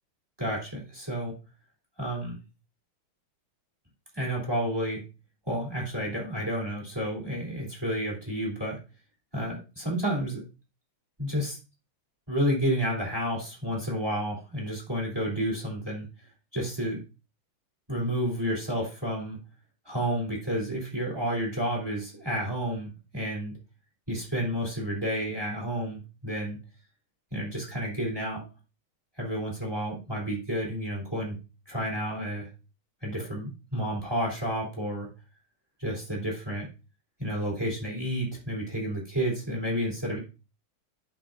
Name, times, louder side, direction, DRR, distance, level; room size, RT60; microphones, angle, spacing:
voice 1, 0.4-1.4 2.0-2.4 4.1-5.0 5.5-8.8 9.3-10.4 11.2-11.6 12.3-16.1 16.5-17.0 17.9-19.4 19.8-23.5 24.1-26.6 27.3-28.5 29.2-31.4 31.7-32.5 33.0-35.1 35.8-36.7 37.2-40.2, equal, 10° right, -3 dB, 3.0 m, -30 dB
11.5 x 5.7 x 2.6 m, 0.31 s
omnidirectional pair, 2.3 m